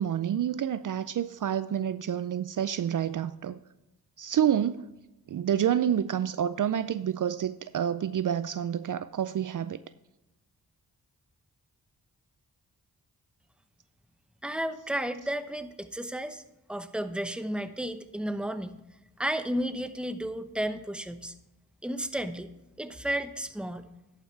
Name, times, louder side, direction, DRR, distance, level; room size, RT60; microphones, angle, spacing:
voice 1, 0.0-3.6 4.2-4.9 5.3-9.8, right 9 dB, 55° right, 0.5 m, -28 dB
voice 2, 14.4-16.4 16.7-18.8 19.2-21.3 21.8-22.5 22.8-23.8, right 1 dB, 5° right, 0.9 m, -33 dB
11.0 x 9.0 x 3.3 m
cardioid pair, 55°, 38 cm